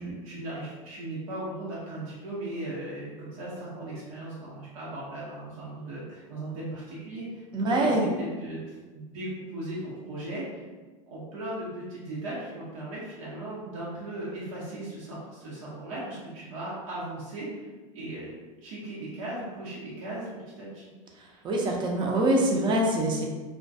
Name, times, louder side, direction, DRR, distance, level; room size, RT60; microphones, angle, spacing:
voice 1, 0.0-7.4 7.8-10.6 11.1-17.7 17.9-18.3 18.6-20.8, right 1 dB, 75° right, -7 dB, 0.8 m, -37 dB
voice 2, 7.5-8.1 21.4-23.2, right 1 dB, 25° right, 0 dB, 0.5 m, -24 dB
2.2 x 2.2 x 2.6 m, 1.3 s
hypercardioid pair, 110°, 17 cm